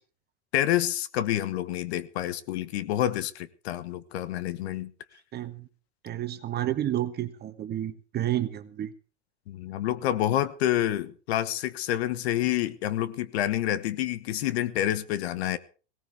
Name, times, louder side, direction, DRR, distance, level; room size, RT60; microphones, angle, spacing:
voice 1, 0.5-4.9 9.5-15.6, left 12 dB, 70° left, 1.3 m, -28 dB
voice 2, 5.3-5.7 6.0-8.9, right 12 dB, 30° right, 1.4 m, -30 dB
18.5 x 17.5 x 3.5 m
hypercardioid pair, 115°, 33 cm